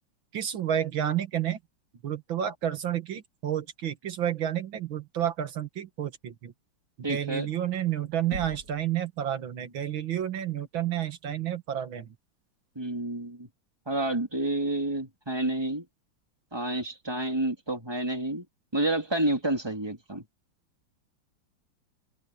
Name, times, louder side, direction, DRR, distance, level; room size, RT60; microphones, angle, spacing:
voice 1, 0.3-1.6 2.0-6.5 7.1-12.1, right 10 dB, 90° right, 2.4 m, -30 dB
voice 2, 7.0-7.5 12.7-13.5 13.9-15.8 16.5-18.4 18.7-20.2, right 1 dB, 15° right, 2.9 m, -29 dB
Knock, 8.3-9.0, right 2 dB, 55° right, 7.8 m, -39 dB
omnidirectional pair, 2.1 m